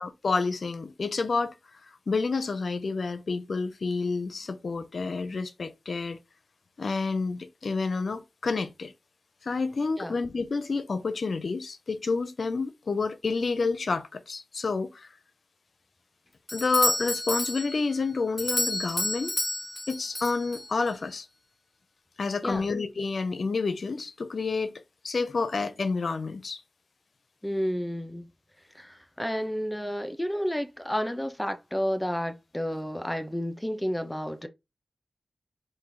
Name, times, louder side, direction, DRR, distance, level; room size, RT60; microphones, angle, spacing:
voice 1, 0.0-1.5 2.1-6.2 6.8-8.9 9.4-15.1 16.5-19.4 19.9-21.3 22.2-26.6, left 4 dB, 75° left, 0.6 m, -29 dB
Doorbell, 16.5-21.0, left 1 dB, 35° left, 1.2 m, -31 dB
voice 2, 27.4-28.3 28.7-34.5, equal, 10° left, 0.8 m, -31 dB
4.6 x 2.6 x 3.9 m
cardioid pair, 45°, 0 cm